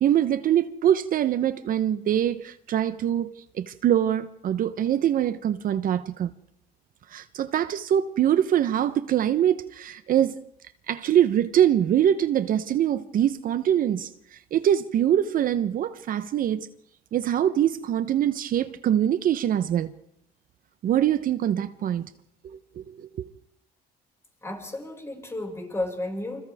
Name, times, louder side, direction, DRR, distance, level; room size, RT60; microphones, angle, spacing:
voice 1, 0.0-6.3 7.1-10.4 10.9-16.7 17.1-19.9 20.8-22.1 22.4-22.6 22.9-23.3, right 10 dB, 55° right, 0.9 m, -24 dB
voice 2, 24.4-26.4, left 2 dB, 15° left, 5.9 m, -32 dB
29.0 x 26.5 x 3.6 m
cardioid pair, 110°, 17 cm